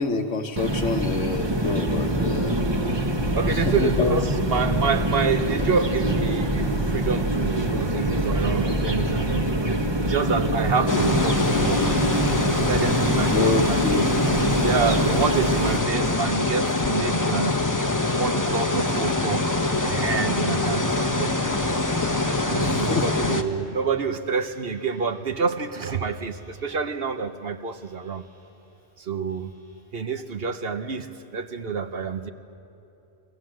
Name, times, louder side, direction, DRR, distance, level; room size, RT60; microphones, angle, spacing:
voice 1, 0.0-2.6 3.4-4.2 13.3-14.3 22.6-23.1, left 3 dB, 75° left, 6 dB, 1.7 m, -26 dB
sound 1, 0.6-15.8, right 1 dB, 20° right, 1.2 m, -24 dB
voice 2, 3.3-11.9 12.6-14.1 14.6-17.6 18.1-19.6 19.9-21.6 22.4-28.3 29.0-29.5 29.9-32.3, right 5 dB, 55° right, 9 dB, 1.1 m, -28 dB
sound 2, 10.9-23.4, left 2 dB, 15° left, 1.0 m, -24 dB
sound 3, 11.5-24.1 24.4-25.6 26.0-27.2 27.6-28.7 29.3-29.8, equal, 75° right, 6.5 m, -51 dB
28.5 x 21.5 x 7.8 m, 2.8 s
omnidirectional pair, 1.3 m